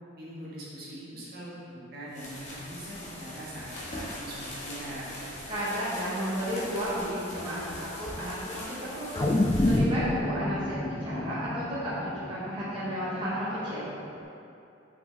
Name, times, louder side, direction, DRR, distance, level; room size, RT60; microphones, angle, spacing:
voice 1, 0.2-5.1, right 1 dB, 50° right, -7 dB, 1.4 m, -42 dB
sound 1, 2.1-9.8, left 1 dB, 35° left, 1.3 m, -41 dB
voice 2, 5.5-13.9, equal, 25° right, -11 dB, 1.0 m, -33 dB
sound 2, 9.2-13.7 14.1-14.2, left 1 dB, 20° left, 0.3 m, -28 dB
5.9 x 5.8 x 3.3 m, 2.8 s
head